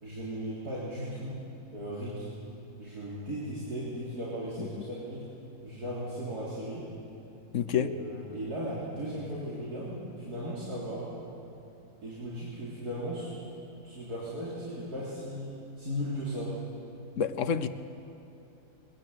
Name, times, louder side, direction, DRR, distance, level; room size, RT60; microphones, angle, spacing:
voice 1, 0.0-1.4 1.7-2.3 2.8-5.2 5.6-6.9 7.8-11.1 12.0-13.3 13.8-15.5 15.8-16.6, equal, 70° right, -8 dB, 4.0 m, -36 dB
voice 2, 7.5-7.9 17.2-17.7, left 7 dB, 55° left, 11 dB, 1.0 m, -28 dB
22.0 x 17.5 x 8.2 m, 2.9 s
omnidirectional pair, 1.7 m